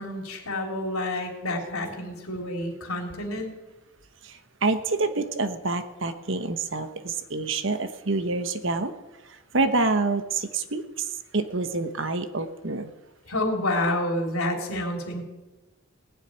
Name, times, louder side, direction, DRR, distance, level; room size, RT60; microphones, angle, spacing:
voice 1, 0.0-3.5 13.3-15.2, left 1 dB, 85° left, 2 dB, 3.3 m, -29 dB
voice 2, 4.6-8.9 9.5-10.8 11.3-12.9, right 3 dB, 60° right, 10 dB, 1.1 m, -27 dB
18.5 x 7.4 x 9.8 m, 1.1 s
head